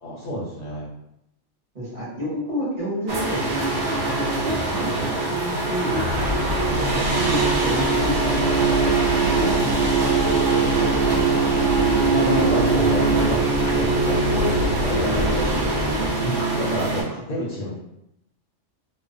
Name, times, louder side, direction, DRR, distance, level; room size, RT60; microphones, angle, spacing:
voice 1, 0.0-0.9 10.4-11.1 12.1-15.5 15.8-17.7, left 1 dB, 60° left, -7 dB, 0.7 m, -30 dB
voice 2, 1.7-4.3 4.7-6.0 6.7-9.8 12.5-12.6, equal, 40° right, -9 dB, 0.9 m, -30 dB
sound 1, 3.1-17.0, right 3 dB, 55° right, 0.6 m, -22 dB
sound 2, 6.1-16.1, equal, 75° right, 0.9 m, -27 dB
2.4 x 2.0 x 2.5 m, 0.83 s
omnidirectional pair, 1.3 m